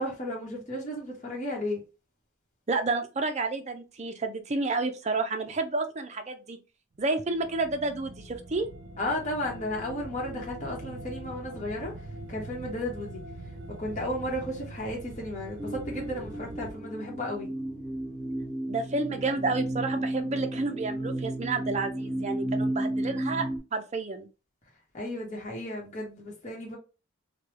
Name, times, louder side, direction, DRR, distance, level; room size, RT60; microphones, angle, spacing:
voice 1, 0.0-1.8 9.0-11.9 12.3-13.2 13.7-17.5 24.9-26.8, left 1 dB, 40° left, 1.0 m, -34 dB
voice 2, 2.7-6.6 7.0-8.7 18.7-23.5 23.7-24.3, right 3 dB, 35° right, 0.5 m, -30 dB
sound 1, 6.9-16.7, right 1 dB, 85° right, 0.6 m, -43 dB
sound 2, 15.6-23.6, right 1 dB, 5° left, 1.1 m, -33 dB
3.2 x 2.2 x 3.0 m
head